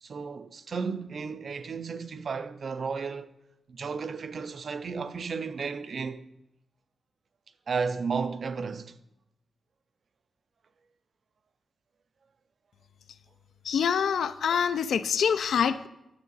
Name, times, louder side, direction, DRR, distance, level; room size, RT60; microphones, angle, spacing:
voice 1, 0.0-3.3 3.7-6.2 7.7-9.0, right 5 dB, 50° right, 0.4 m, -33 dB
voice 2, 13.6-15.9, left 7 dB, 80° left, 0.4 m, -25 dB
9.6 x 7.2 x 4.0 m
wide cardioid pair, 140°, 0 cm